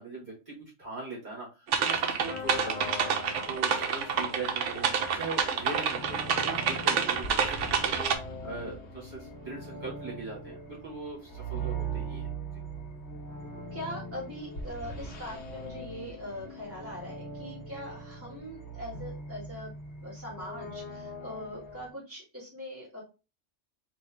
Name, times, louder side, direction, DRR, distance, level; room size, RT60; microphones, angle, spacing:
voice 1, 0.0-12.3, right 3 dB, 40° right, -8 dB, 2.3 m, -41 dB
sound 1, 1.7-8.1, right 6 dB, 80° right, 1.0 m, -28 dB
sound 2, 2.3-21.9, right 2 dB, 65° left, 1.2 m, -41 dB
voice 2, 13.7-19.7 20.0-23.0, equal, 10° right, -7 dB, 2.3 m, -41 dB
4.1 x 3.1 x 3.5 m, 0.30 s
omnidirectional pair, 1.2 m